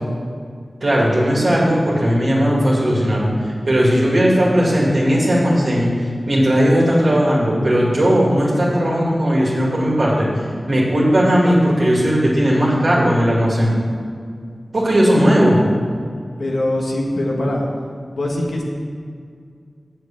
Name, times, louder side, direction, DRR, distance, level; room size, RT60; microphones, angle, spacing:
voice 1, 0.8-5.9 6.3-10.3 10.7-13.7 14.7-15.6, equal, 65° right, -6 dB, 2.3 m, -16 dB
voice 2, 16.4-17.6 18.1-18.6, left 1 dB, 85° left, -2 dB, 1.5 m, -22 dB
7.1 x 6.6 x 7.5 m, 2.2 s
cardioid pair, 40°, 0 cm